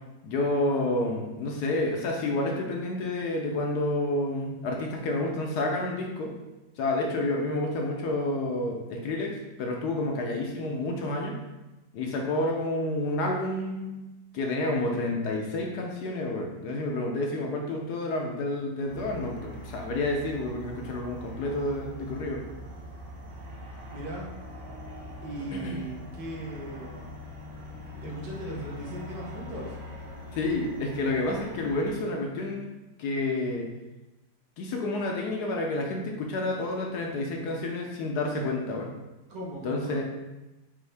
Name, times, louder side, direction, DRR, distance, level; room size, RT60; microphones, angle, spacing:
voice 1, 0.2-6.3 6.8-11.3 11.9-14.0 14.3-22.4 25.5-25.8 30.3-32.6 33.0-33.7 34.6-38.9 39.6-40.0, left 2 dB, 70° left, 0 dB, 1.1 m, -29 dB
sound 1, 18.9-31.9, left 1 dB, 55° right, 0.9 m, -42 dB
voice 2, 23.9-24.3 25.2-27.1 28.0-29.8 39.3-40.0, right 2 dB, 70° right, -3 dB, 1.6 m, -38 dB
5.3 x 2.7 x 3.3 m, 1.0 s
omnidirectional pair, 2.0 m